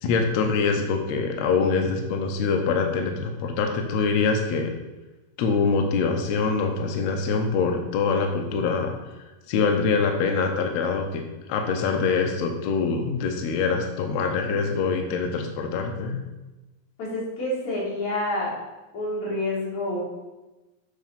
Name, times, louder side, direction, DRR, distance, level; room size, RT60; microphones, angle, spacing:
voice 1, 0.0-4.7 5.4-11.2 11.5-16.2, left 4 dB, 80° left, 4 dB, 1.6 m, -24 dB
voice 2, 17.0-18.6 18.9-20.0, left 1 dB, 50° left, -5 dB, 3.8 m, -28 dB
7.4 x 6.4 x 5.6 m, 1.1 s
omnidirectional pair, 4.1 m